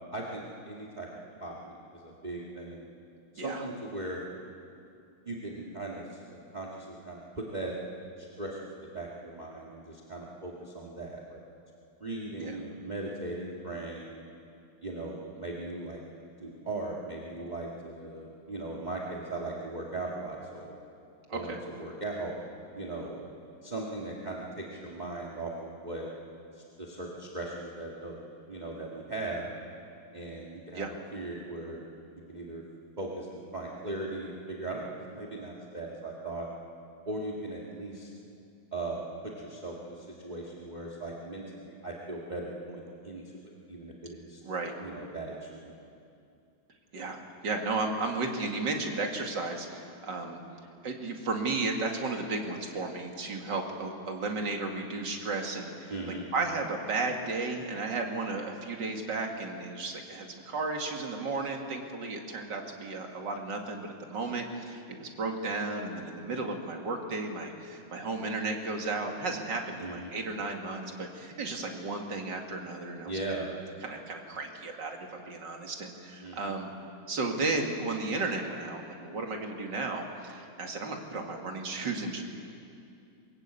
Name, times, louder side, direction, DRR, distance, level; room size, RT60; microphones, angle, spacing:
voice 1, 0.1-1.1 1.4-2.8 3.3-4.3 5.2-6.2 6.5-7.7 8.2-11.4 12.0-14.2 14.8-16.0 16.4-20.7 21.3-22.4 22.7-23.2 23.6-26.1 26.5-29.5 30.1-30.9 31.1-31.8 32.3-32.6 33.0-36.5 37.1-38.1 38.7-43.2 43.7-44.4 44.8-45.7 55.9-56.2 69.8-70.1 73.0-73.5 76.2-76.5, right 2 dB, 20° right, -3 dB, 2.2 m, -38 dB
voice 2, 44.4-44.7 46.9-50.4 50.8-55.9 56.3-73.1 73.8-76.7 77.1-82.2, right 3 dB, 60° right, 2 dB, 2.8 m, -34 dB
23.5 x 21.0 x 8.4 m, 2.5 s
omnidirectional pair, 2.2 m